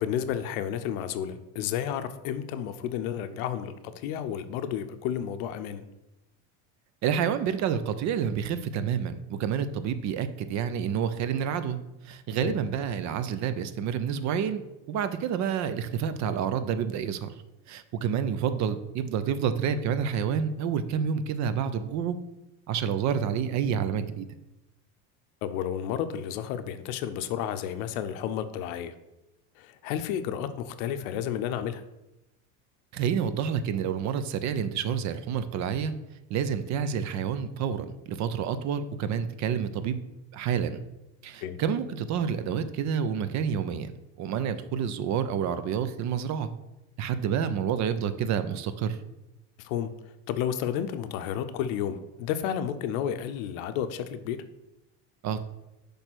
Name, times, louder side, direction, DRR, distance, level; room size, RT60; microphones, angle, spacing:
voice 1, 0.0-5.8 12.4-12.6 25.4-28.9 29.6-31.8 41.4-41.6 49.6-49.9 50.3-54.4, left 9 dB, 80° left, 9 dB, 0.6 m, -31 dB
voice 2, 7.0-11.8 12.0-14.6 14.9-17.3 17.7-22.2 22.7-24.3 32.9-35.9 36.3-40.0 40.3-40.8 41.2-43.9 44.2-46.5 47.0-49.0 55.2-55.4, right 8 dB, 45° right, 12 dB, 0.5 m, -28 dB
6.2 x 3.4 x 5.9 m, 0.95 s
supercardioid pair, 125°, 41 cm